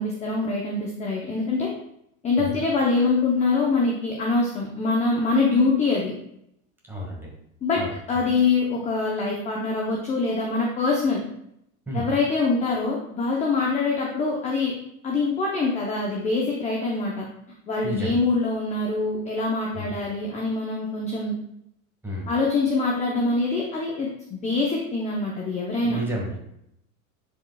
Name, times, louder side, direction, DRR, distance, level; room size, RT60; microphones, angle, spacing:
voice 1, 0.0-1.7 2.2-6.1 7.6-7.8 8.1-11.2 11.9-14.7 15.0-17.3 17.7-21.3 22.3-26.0, left 3 dB, 15° left, -2 dB, 0.8 m, -24 dB
voice 2, 6.9-7.3 7.7-7.9 11.9-12.1 17.8-18.2 19.7-20.0 22.0-22.3 25.8-26.4, right 1 dB, 5° right, -3 dB, 1.8 m, -31 dB
10.0 x 5.0 x 2.3 m, 0.76 s
supercardioid pair, 145°, 42 cm